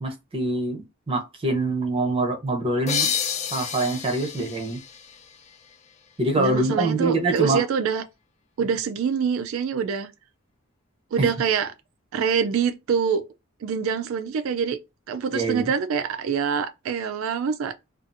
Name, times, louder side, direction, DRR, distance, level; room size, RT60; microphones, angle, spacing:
voice 1, 0.0-3.1 3.5-4.8 6.2-7.6 11.2-11.3 15.3-15.7, right 2 dB, 25° right, 0.7 m, -25 dB
sound 1, 2.9-6.3, left 7 dB, 35° left, 0.4 m, -30 dB
voice 2, 6.4-8.0 8.6-10.1 11.1-11.7 12.1-13.2 13.6-14.8 15.1-17.8, right 6 dB, 75° right, 0.3 m, -25 dB
2.6 x 2.5 x 2.5 m
head